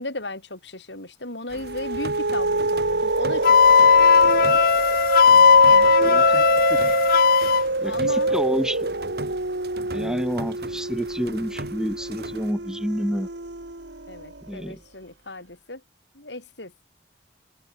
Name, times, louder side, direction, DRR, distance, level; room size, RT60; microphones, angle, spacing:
voice 1, 0.0-4.6 5.3-6.4 7.8-8.7 14.1-15.8 16.1-16.7, left 2 dB, 80° left, 8.0 m, -36 dB
sound 1, 1.5-12.5, right 2 dB, 60° right, 3.3 m, -40 dB
sound 2, 1.6-14.4, right 2 dB, 80° right, 2.6 m, -25 dB
Wind instrument woodwind instrument, 3.4-7.6, left 7 dB, 55° left, 0.3 m, -16 dB
voice 2, 6.0-6.4 6.7-7.0 7.8-8.9 9.9-13.3 14.5-14.8, equal, 5° right, 3.2 m, -29 dB
head